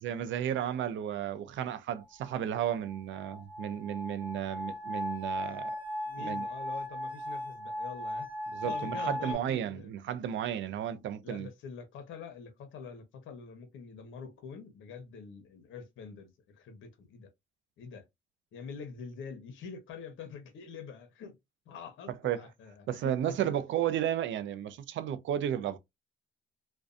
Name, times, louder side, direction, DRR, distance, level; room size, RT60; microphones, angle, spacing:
voice 1, 0.0-5.8 6.2-6.4 8.5-11.5 22.2-22.5 22.9-25.8, right 10 dB, 75° right, 0.5 m, -33 dB
sound 1, 2.2-9.3, left 1 dB, 25° right, 0.9 m, -37 dB
voice 2, 6.1-8.3 8.6-9.9 11.2-17.3 17.8-18.0 18.5-21.4 21.7-23.5, left 6 dB, 75° left, 0.8 m, -45 dB
2.5 x 2.2 x 2.4 m
cardioid pair, 90°, 20 cm